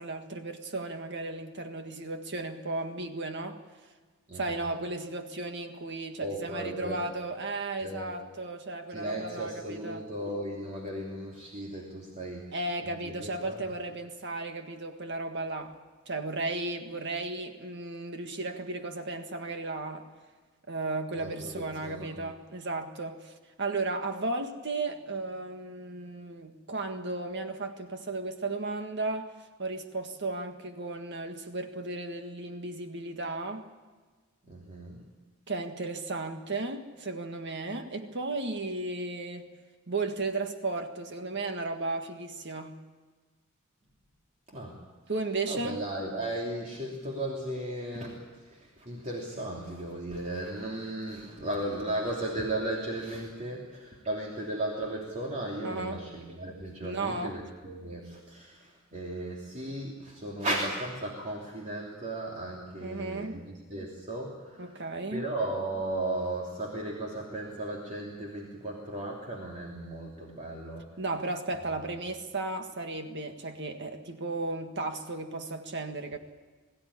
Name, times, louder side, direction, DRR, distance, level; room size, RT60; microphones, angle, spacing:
voice 1, 0.0-3.6 4.3-10.1 12.5-15.8 16.1-20.1 20.7-23.3 23.6-29.3 29.6-33.7 35.5-39.5 39.9-42.8 45.1-45.8 55.6-56.0 56.8-57.4 62.8-63.4 64.6-65.3 71.0-76.2, right 2 dB, 55° right, 6 dB, 1.7 m, -35 dB
voice 2, 4.3-4.7 6.2-7.0 7.8-8.1 8.9-13.6 21.2-22.2 34.4-35.0 44.5-44.8 45.5-64.7 65.1-70.9, right 1 dB, 35° right, -3 dB, 3.1 m, -36 dB
22.0 x 15.5 x 10.0 m, 1.4 s
head